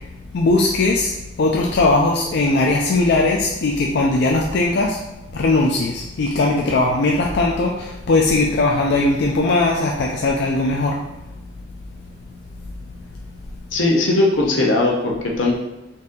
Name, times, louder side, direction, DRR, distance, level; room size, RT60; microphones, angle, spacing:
voice 1, 0.3-1.1 1.4-5.0 5.3-11.0, left 2 dB, 60° left, 0 dB, 0.4 m, -19 dB
voice 2, 13.7-15.5, left 2 dB, 90° left, -1 dB, 0.9 m, -18 dB
3.9 x 2.7 x 3.7 m, 0.95 s
head